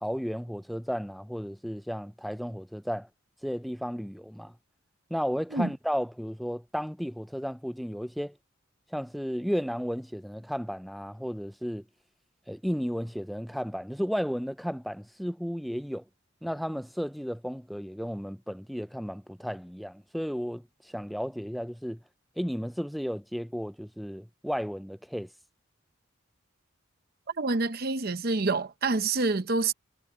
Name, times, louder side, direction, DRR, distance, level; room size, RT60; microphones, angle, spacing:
voice 1, 0.0-3.1 3.4-4.5 5.1-8.4 8.9-11.8 12.5-16.0 16.4-22.0 22.4-25.3, equal, ahead, 0.3 m, -33 dB
voice 2, 27.4-29.7, right 3 dB, 50° right, 0.8 m, -27 dB
head